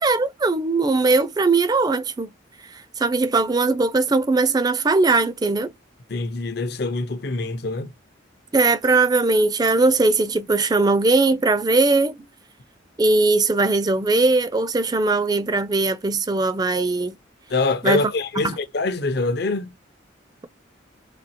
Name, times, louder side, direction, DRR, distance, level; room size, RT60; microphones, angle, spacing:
voice 1, 0.0-2.3 3.0-5.7 8.5-12.1 13.0-17.2 17.8-18.1 18.4-18.6, right 3 dB, 20° right, 0.3 m, -20 dB
voice 2, 6.1-7.9 17.5-19.7, left 3 dB, 55° left, 0.6 m, -24 dB
4.2 x 2.7 x 2.8 m
head